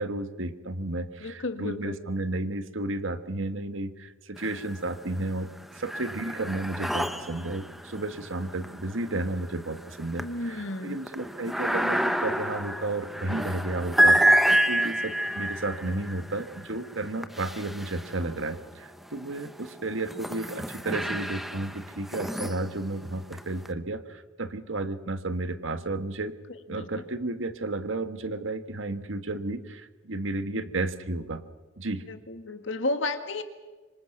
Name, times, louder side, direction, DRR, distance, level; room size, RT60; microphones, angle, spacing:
voice 1, 0.0-5.5 5.7-26.3 26.7-31.4 31.8-32.0, right 2 dB, 75° right, 10 dB, 1.5 m, -32 dB
voice 2, 1.2-2.0 10.2-11.0 26.5-27.0 30.5-30.6 32.1-33.4, left 2 dB, 65° left, 8 dB, 1.9 m, -33 dB
sound 1, 4.4-5.0 5.4-18.6 19.2-23.7, right 1 dB, ahead, 0.9 m, -29 dB
26.0 x 25.5 x 6.1 m, 1.3 s
head